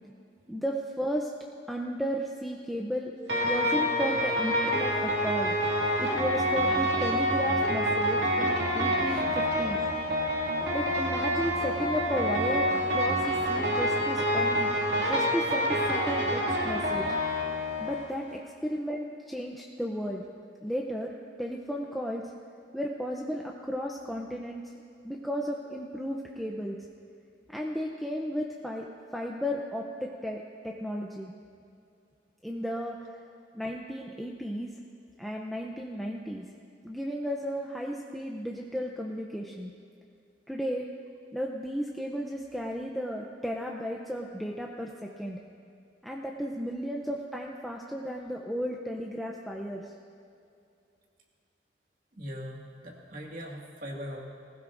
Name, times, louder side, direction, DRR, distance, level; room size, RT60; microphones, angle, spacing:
voice 1, 0.5-1.3 1.7-3.1 3.4-5.5 6.0-9.8 10.7-14.7 15.0-17.1 17.8-20.2 20.6-22.2 22.7-24.6 25.0-26.8 27.5-31.3 32.4-33.2 33.5-34.7 35.2-36.4 36.8-39.7 40.5-40.9 41.3-45.4 46.0-49.9, equal, ahead, -1 dB, 0.6 m, -34 dB
sound 1, 3.3-18.0, equal, 75° right, 2.4 m, -27 dB
voice 2, 52.1-54.3, equal, 50° right, -1 dB, 2.0 m, -41 dB
20.0 x 16.0 x 2.6 m, 2.5 s
head